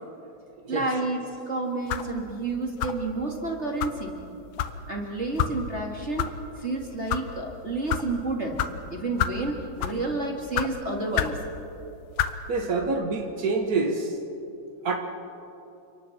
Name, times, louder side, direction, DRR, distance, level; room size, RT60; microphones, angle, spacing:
voice 1, 0.7-4.1 4.9-6.3 6.6-8.6 8.9-11.4, right 2 dB, 25° right, 0 dB, 2.0 m, -30 dB
sound 1, 1.9-2.1 2.8-3.1 3.8-4.0 4.6-4.8 5.4-5.5 6.2-6.3 6.9-7.2 7.9-8.0 8.6-8.7 9.2-9.4 9.8-10.0 10.5-10.7 11.1-11.4 12.2-12.4, left 10 dB, 70° left, 1.7 m, -27 dB
voice 2, 12.5-14.1 14.8-14.9, right 3 dB, 85° right, 3 dB, 0.8 m, -26 dB
29.5 x 26.0 x 4.3 m, 2.8 s
omnidirectional pair, 3.8 m